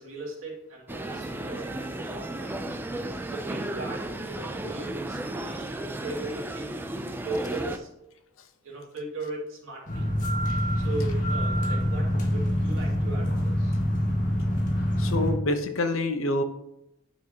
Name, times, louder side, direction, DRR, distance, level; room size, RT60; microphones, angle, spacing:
voice 1, 0.0-2.5 3.3-6.8 7.2-7.9 8.6-10.1 10.7-13.8, right 2 dB, 80° right, -3 dB, 2.5 m, -38 dB
sound 1, 0.9-7.8, right 1 dB, 10° right, 0.4 m, -34 dB
sound 2, 9.9-15.3, equal, 40° left, 1.7 m, -25 dB
voice 2, 15.0-16.4, left 2 dB, 75° left, 8 dB, 0.8 m, -27 dB
9.1 x 6.1 x 2.9 m, 0.82 s
head